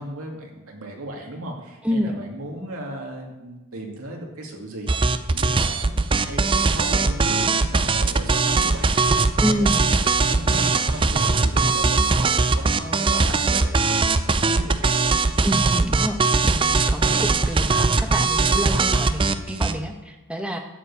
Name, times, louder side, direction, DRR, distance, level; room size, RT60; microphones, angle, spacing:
voice 1, 0.0-4.9 5.3-15.1, right 1 dB, 75° right, 0 dB, 2.3 m, -36 dB
voice 2, 1.8-2.2 9.4-9.9 15.4-16.2 16.4-20.6, equal, 5° right, 3 dB, 1.0 m, -27 dB
sound 1, 4.9-19.7, right 4 dB, 25° right, 0.4 m, -20 dB
12.5 x 5.3 x 8.1 m, 1.1 s
head